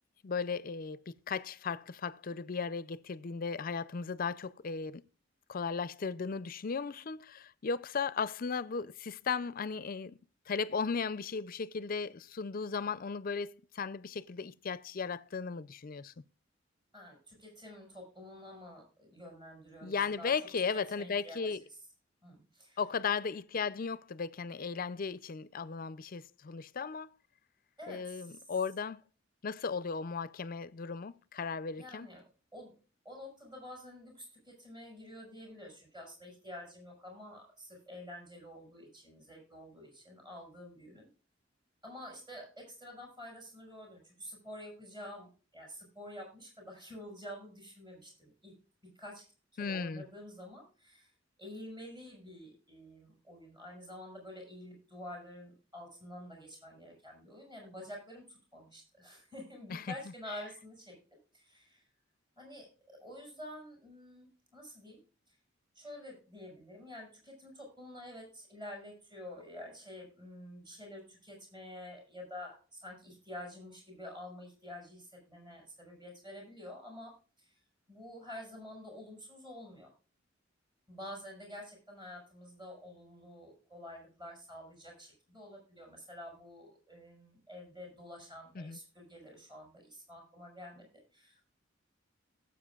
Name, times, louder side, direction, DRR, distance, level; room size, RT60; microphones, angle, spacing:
voice 1, 0.2-5.0 5.5-10.2 10.5-16.1 19.8-21.6 22.8-27.1 27.9-29.0 29.4-32.1 49.6-50.0 59.7-59.9 88.5-88.8, left 5 dB, 45° left, 0.5 m, -36 dB
voice 2, 16.9-20.3 20.7-21.4 22.2-22.8 27.8-28.4 31.8-32.2 32.5-32.7 33.0-41.1 41.8-48.5 48.9-49.2 49.5-51.1 51.4-61.0 61.3-61.8 62.4-65.0 65.7-77.1 77.4-77.5 77.9-79.9 80.9-91.5, left 1 dB, 25° right, 6.2 m, -49 dB
17.5 x 8.0 x 2.4 m
head